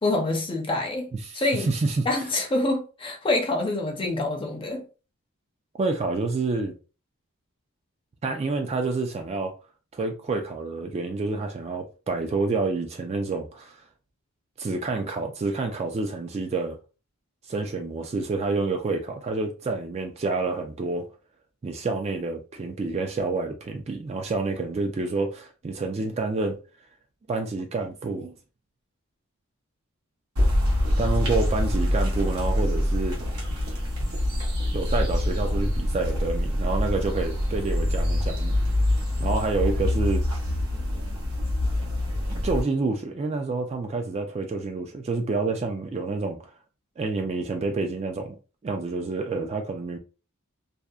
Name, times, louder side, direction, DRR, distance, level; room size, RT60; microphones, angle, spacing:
voice 1, 0.0-1.7 2.1-4.8, left 2 dB, 25° left, 0.5 m, -26 dB
voice 2, 1.2-2.1 5.8-6.7 8.2-9.5 9.9-13.8 14.6-16.8 17.5-21.1 21.6-26.6 27.3-28.3 31.0-33.2 34.7-38.6 39.2-40.2 42.4-46.4 47.0-48.4 48.6-50.0, right 3 dB, 30° right, 0.3 m, -28 dB
sound 1, 30.4-42.6, left 1 dB, 85° right, 1.0 m, -25 dB
2.7 x 2.0 x 2.3 m
head